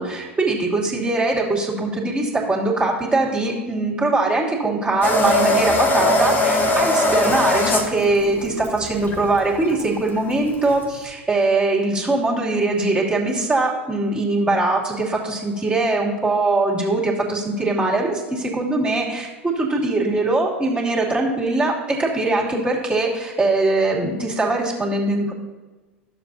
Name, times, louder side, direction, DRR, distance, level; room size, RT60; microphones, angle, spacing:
voice 1, 0.0-25.3, right 2 dB, 15° right, -4 dB, 2.5 m, -21 dB
sound 1, 5.0-11.0, left 2 dB, 30° left, 1.4 m, -21 dB
13.0 x 7.4 x 2.7 m, 1.3 s
hypercardioid pair, 85°, 7 cm